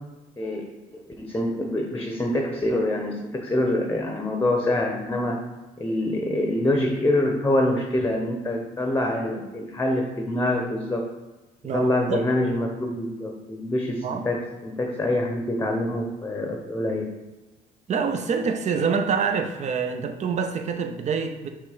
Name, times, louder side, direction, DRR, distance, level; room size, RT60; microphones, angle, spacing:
voice 1, 0.4-0.7 0.9-5.4 5.8-11.1 11.7-17.1, left 1 dB, 15° left, 2 dB, 0.9 m, -25 dB
voice 2, 11.6-12.2 14.0-14.3 17.9-21.5, right 5 dB, 45° right, 6 dB, 0.8 m, -26 dB
6.0 x 3.3 x 5.0 m, 1.1 s
cardioid pair, 110°, 17 cm